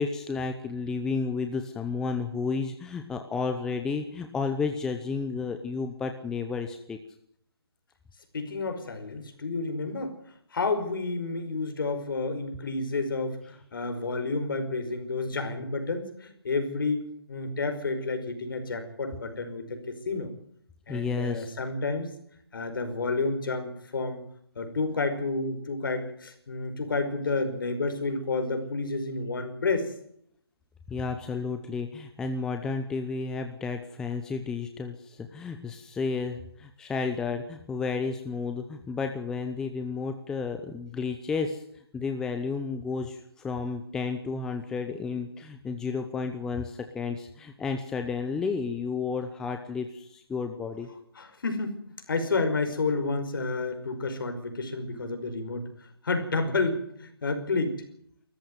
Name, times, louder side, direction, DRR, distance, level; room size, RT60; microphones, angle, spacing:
voice 1, 0.0-7.0 20.9-21.5 30.9-41.6 41.9-50.9, left 4 dB, 5° left, 6 dB, 0.8 m, -32 dB
voice 2, 8.3-10.1 10.5-20.3 20.9-22.1 22.5-24.2 24.6-29.9 51.2-55.7 56.0-57.8, left 3 dB, 60° left, 7 dB, 5.4 m, -30 dB
20.0 x 14.5 x 9.3 m, 0.68 s
hypercardioid pair, 165°, 13 cm